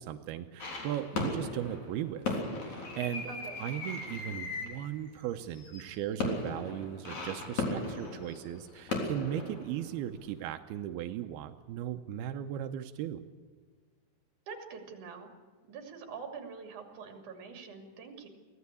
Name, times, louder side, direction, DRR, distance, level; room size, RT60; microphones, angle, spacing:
voice 1, 0.0-3.3 3.6-13.2, right 11 dB, 80° right, 7 dB, 2.2 m, -37 dB
sound 1, 0.6-10.3, left 2 dB, 40° left, 4.4 m, -37 dB
voice 2, 3.3-3.6 14.5-15.3 15.7-18.3, right 5 dB, 45° right, 4 dB, 3.7 m, -45 dB
24.0 x 17.5 x 8.4 m, 1.5 s
omnidirectional pair, 5.5 m